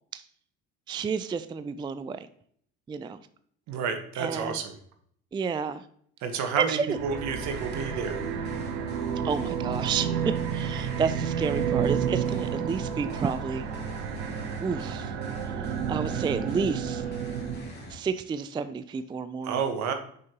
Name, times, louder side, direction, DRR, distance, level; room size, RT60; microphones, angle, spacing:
voice 1, 0.9-2.2 2.9-3.2 4.2-4.6 5.3-5.8 6.6-7.0 9.2-13.7 14.6-15.1 15.9-17.0 17.9-19.6, right 5 dB, 15° right, 12 dB, 0.3 m, -30 dB
voice 2, 3.7-4.7 6.2-8.2 19.4-19.9, right 6 dB, 65° right, 6 dB, 1.3 m, -30 dB
sound 1, 6.9-17.7, right 8 dB, 90° right, 0.7 m, -31 dB
sound 2, 7.5-18.0, left 1 dB, 35° left, 2.8 m, -43 dB
6.5 x 5.2 x 2.9 m, 0.63 s
supercardioid pair, 80°, 31 cm